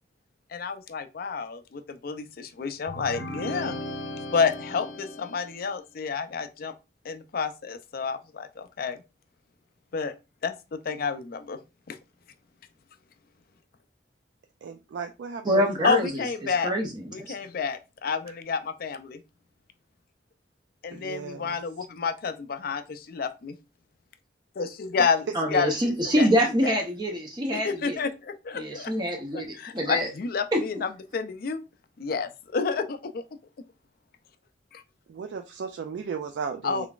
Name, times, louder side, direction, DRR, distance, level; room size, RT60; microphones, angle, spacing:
voice 1, 0.5-3.8 4.3-6.7 7.0-9.0 9.9-10.1 10.4-11.6 11.9-12.0 15.8-16.7 17.1-19.2 20.8-23.6 24.6-25.2 25.5-26.3 26.6-26.8 27.5-28.9 29.3-31.6 32.0-33.2 34.7-34.8 36.6-36.9, left 5 dB, 55° left, 0.4 m, -30 dB
sound 1, 2.9-5.7, left 1 dB, 80° left, 0.8 m, -36 dB
voice 2, 14.6-15.9 20.9-21.6 35.1-36.9, right 6 dB, 70° right, 0.3 m, -36 dB
voice 3, 15.4-17.4 25.3-28.0 28.5-30.1 30.5-30.6, equal, 25° right, 0.6 m, -26 dB
3.7 x 3.4 x 2.3 m
head